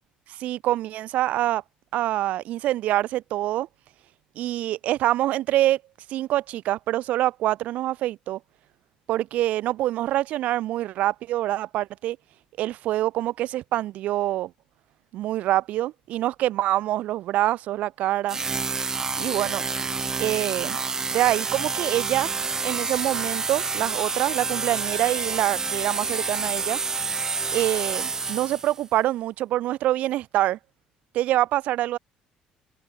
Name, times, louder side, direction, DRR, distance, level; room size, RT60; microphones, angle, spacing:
voice 1, 0.3-1.6 1.9-3.7 4.4-5.8 6.1-8.4 9.1-12.2 12.6-14.5 15.1-18.4 19.2-19.6 20.2-20.8 21.1-22.3 22.6-26.8 27.5-30.6 31.1-32.0, right 14 dB, 60° right, 1.9 m, -25 dB
sound 1, 18.3-28.8, right 4 dB, 20° right, 1.5 m, -28 dB
cardioid pair, 140°, 3 cm